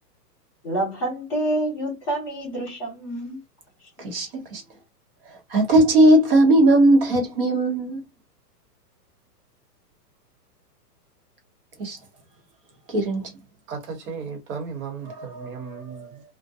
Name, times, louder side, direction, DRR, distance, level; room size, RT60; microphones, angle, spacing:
voice 1, 0.6-3.4, right 1 dB, 5° left, 0.7 m, -27 dB
voice 2, 4.0-4.6 5.5-8.0 11.8-12.0 12.9-13.3 15.3-15.8, right 1 dB, 35° right, 0.9 m, -18 dB
voice 3, 13.7-16.2, right 5 dB, 55° right, 1.2 m, -35 dB
2.3 x 2.1 x 2.6 m
hypercardioid pair, 175°, 48 cm